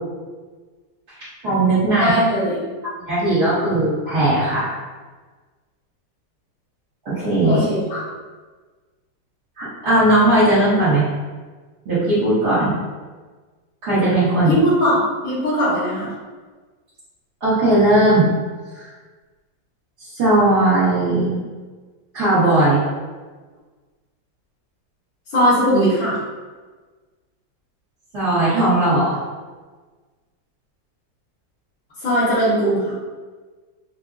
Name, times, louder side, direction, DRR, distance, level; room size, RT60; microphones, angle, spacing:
voice 1, 1.4-2.1 3.0-4.7 7.0-7.6 9.6-11.1 11.8-12.8 13.8-14.5 17.4-18.3 18.7-18.8 20.1-21.4 22.1-22.8 28.1-29.2, right 1 dB, 60° right, -13 dB, 1.5 m, -17 dB
voice 2, 1.9-2.7 7.4-8.0 14.5-15.0 15.2-16.1 25.3-26.2 32.0-32.9, equal, 60° left, -17 dB, 1.9 m, -19 dB
4.9 x 2.1 x 2.3 m, 1.4 s
omnidirectional pair, 2.0 m